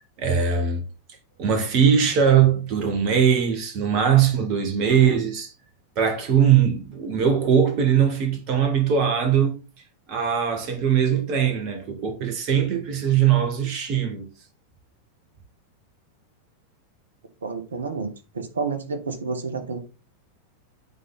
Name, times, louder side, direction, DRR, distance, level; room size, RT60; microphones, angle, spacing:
voice 1, 0.2-0.8 1.4-5.5 5.9-9.6 10.1-14.3, right 8 dB, 40° right, 1.7 m, -21 dB
voice 2, 17.4-19.8, right 4 dB, 70° right, 1.3 m, -30 dB
9.1 x 4.0 x 3.9 m
figure-of-eight pair, 90°, 0 cm